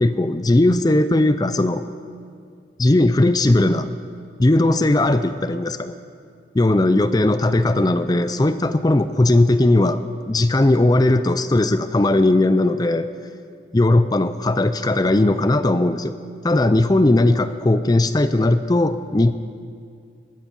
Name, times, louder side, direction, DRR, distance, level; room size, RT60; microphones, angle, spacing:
voice 1, 0.0-1.8 2.8-3.9 4.4-6.0 6.5-13.1 13.7-16.1 16.4-19.3, left 2 dB, 20° left, 11 dB, 0.5 m, -18 dB
19.5 x 13.5 x 5.4 m, 2.3 s
head